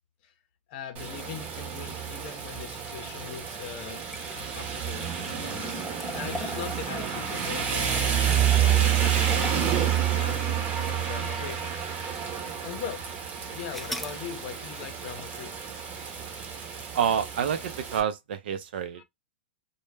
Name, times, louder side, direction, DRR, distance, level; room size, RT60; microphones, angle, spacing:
voice 1, 0.7-4.0 4.3-11.6 12.6-13.1 13.5-15.6 19.0-19.1, left 9 dB, 50° left, 0.6 m, -41 dB
Rain, 1.0-18.0, right 9 dB, 30° right, 0.8 m, -29 dB
sound 1, 3.3-11.6 12.2-12.3 13.7-14.2, left 1 dB, ahead, 0.4 m, -42 dB
voice 2, 16.9-19.0, right 8 dB, 65° right, 0.5 m, -28 dB
2.2 x 2.1 x 3.2 m
hypercardioid pair, 125°, 6 cm